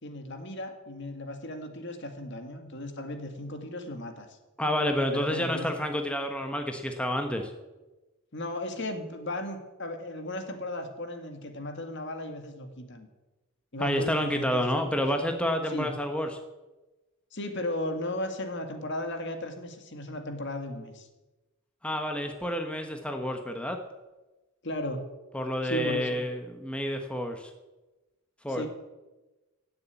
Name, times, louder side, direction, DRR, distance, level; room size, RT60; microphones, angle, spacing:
voice 1, 0.0-4.4 5.1-5.7 8.3-13.1 13.7-15.0 15.7-15.9 17.3-21.1 24.6-25.0 25.6-26.2 28.5-28.7, left 1 dB, 55° left, 5 dB, 2.0 m, -36 dB
voice 2, 4.6-7.5 13.8-16.4 21.8-23.8 25.3-27.5 28.4-28.6, equal, 5° left, 4 dB, 1.0 m, -29 dB
17.0 x 7.1 x 8.3 m, 1.1 s
head